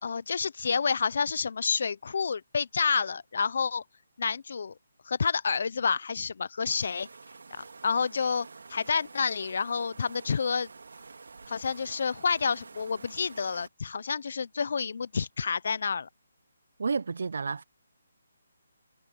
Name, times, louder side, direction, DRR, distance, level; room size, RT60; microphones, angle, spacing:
voice 1, 0.0-3.8 4.2-4.7 5.1-7.1 7.8-10.7 11.5-16.1, left 5 dB, 50° left, 0.5 m, -29 dB
sound 1, 6.7-13.7, right 4 dB, 80° right, 3.1 m, -49 dB
voice 2, 16.8-17.6, right 5 dB, 60° right, 0.5 m, -30 dB
hypercardioid pair, 175°, 0 cm